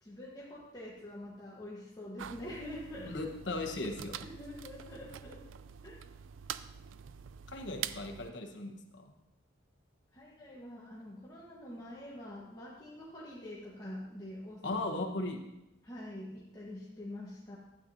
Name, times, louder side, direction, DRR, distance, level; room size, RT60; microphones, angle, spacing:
voice 1, 0.0-3.1 4.2-5.4 5.8-6.0 10.1-14.6 15.8-17.6, left 1 dB, 20° left, -6 dB, 1.2 m, -45 dB
sound 1, 2.2-8.3, right 9 dB, 75° right, 0.4 m, -45 dB
voice 2, 3.1-4.2 7.5-9.0 14.6-15.4, left 2 dB, 65° left, 3 dB, 1.1 m, -37 dB
12.0 x 8.7 x 2.7 m, 0.95 s
head